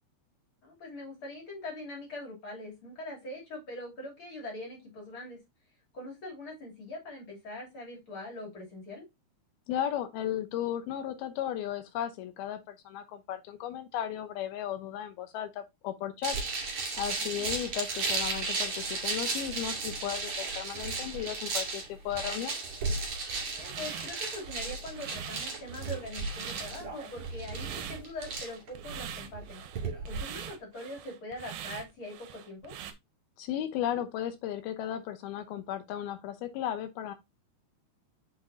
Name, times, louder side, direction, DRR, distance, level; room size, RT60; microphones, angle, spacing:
voice 1, 0.6-5.4 5.9-9.0 17.2-17.5 23.6-29.6 30.1-32.7, left 1 dB, 35° left, 3.3 m, -42 dB
voice 2, 9.7-16.4 17.0-22.6 33.4-37.1, left 10 dB, 80° left, 2.8 m, -35 dB
sound 1, 16.2-30.2, right 3 dB, 45° right, 2.8 m, -35 dB
sound 2, 23.1-32.9, right 10 dB, 70° right, 2.2 m, -44 dB
6.8 x 5.7 x 2.7 m
omnidirectional pair, 4.4 m